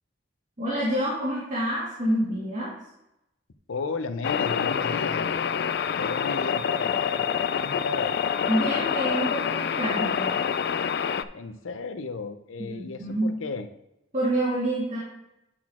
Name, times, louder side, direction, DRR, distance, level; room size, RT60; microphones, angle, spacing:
voice 1, 0.6-2.7 8.5-10.4 12.6-13.3 14.1-15.0, right 1 dB, 40° right, -9 dB, 2.1 m, -27 dB
voice 2, 3.7-5.4 6.0-8.2 11.3-13.7, left 4 dB, 85° left, 9 dB, 0.7 m, -34 dB
sound 1, 4.2-11.2, left 7 dB, 55° left, 0.3 m, -26 dB
9.2 x 4.1 x 4.3 m, 0.88 s
head